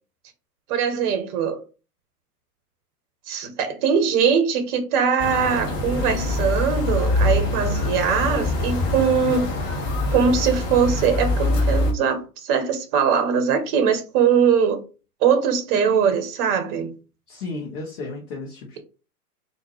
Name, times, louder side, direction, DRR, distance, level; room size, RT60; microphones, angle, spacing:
voice 1, 0.7-1.6 3.3-9.5 10.1-14.8 15.2-16.9, right 6 dB, 30° right, 0.9 m, -21 dB
sound 1, 5.2-11.9, left 2 dB, 25° left, 0.9 m, -24 dB
voice 2, 17.3-18.8, left 3 dB, 50° left, 1.1 m, -34 dB
3.6 x 2.7 x 3.0 m
figure-of-eight pair, 110°, 47 cm